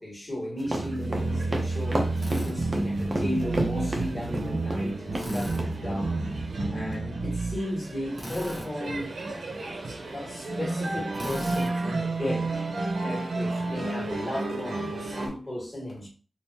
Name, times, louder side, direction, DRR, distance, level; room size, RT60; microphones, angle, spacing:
voice 1, 0.0-2.0 2.3-6.2 6.7-9.1 10.1-12.6 13.0-16.1, left 1 dB, 25° left, 1.8 m, -35 dB
sound 1, 0.6-4.9 5.1-5.3 5.6-5.7, right 1 dB, 40° right, 0.7 m, -30 dB
sound 2, 0.6-15.3, right 2 dB, 85° right, 0.8 m, -31 dB
Drill, 2.2-2.5 5.1-5.6 8.1-8.7 11.1-11.7, equal, 5° left, 1.1 m, -37 dB
3.5 x 2.6 x 2.9 m
wide cardioid pair, 75°, 0 cm